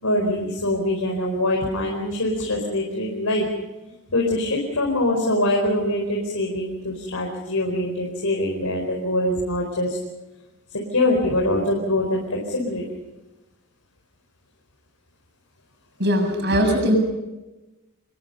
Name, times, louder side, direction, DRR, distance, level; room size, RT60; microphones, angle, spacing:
voice 1, 0.0-3.4 4.1-10.0 10.9-12.8, left 1 dB, 80° left, 0 dB, 4.6 m, -23 dB
voice 2, 16.0-17.0, equal, 50° right, 4 dB, 7.2 m, -20 dB
27.0 x 21.5 x 5.5 m, 1.0 s
head